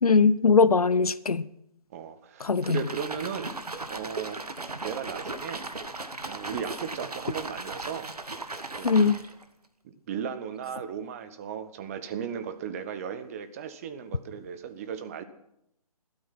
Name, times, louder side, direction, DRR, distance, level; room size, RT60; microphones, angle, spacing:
voice 1, 0.0-1.5 2.4-2.8 8.8-9.2, left 5 dB, 70° left, 0.8 m, -21 dB
voice 2, 1.9-3.5 3.9-4.4 4.8-5.7 6.3-8.1 8.8-9.1 9.8-15.2, right 7 dB, 25° right, 1.0 m, -36 dB
sound 1, 2.6-9.4, right 3 dB, 80° right, 1.6 m, -37 dB
16.5 x 12.5 x 5.8 m
figure-of-eight pair, 145°, 20 cm